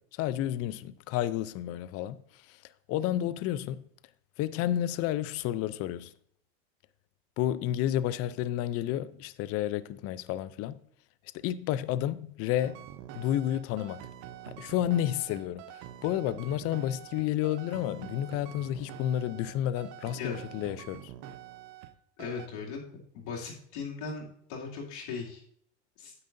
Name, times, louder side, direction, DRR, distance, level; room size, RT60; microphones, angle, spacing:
voice 1, 0.0-2.2 2.5-2.6 2.9-3.8 4.4-6.1 7.4-10.8 11.4-12.8 13.2-14.0 14.5-21.1, left 12 dB, 45° left, 0.5 m, -31 dB
sound 1, 12.6-21.9 22.2-22.5, right 11 dB, 60° right, 0.8 m, -46 dB
voice 2, 22.2-22.8 23.1-25.4 26.0-26.1, left 5 dB, 75° left, 2.7 m, -38 dB
9.6 x 8.5 x 2.6 m
supercardioid pair, 115°, 34 cm